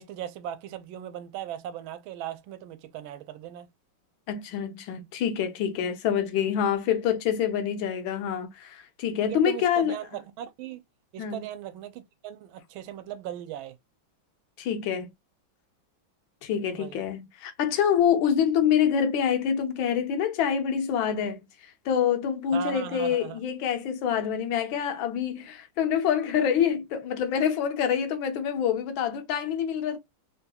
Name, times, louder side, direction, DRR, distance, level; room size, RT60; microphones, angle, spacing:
voice 1, 0.0-3.7 9.2-10.8 11.1-13.8 16.7-17.0 22.5-23.4, right 10 dB, 90° right, 1.4 m, -38 dB
voice 2, 4.3-9.9 11.2-11.4 14.6-15.1 16.4-21.4 21.8-30.0, left 8 dB, 85° left, 1.5 m, -26 dB
3.6 x 2.3 x 2.7 m
omnidirectional pair, 2.1 m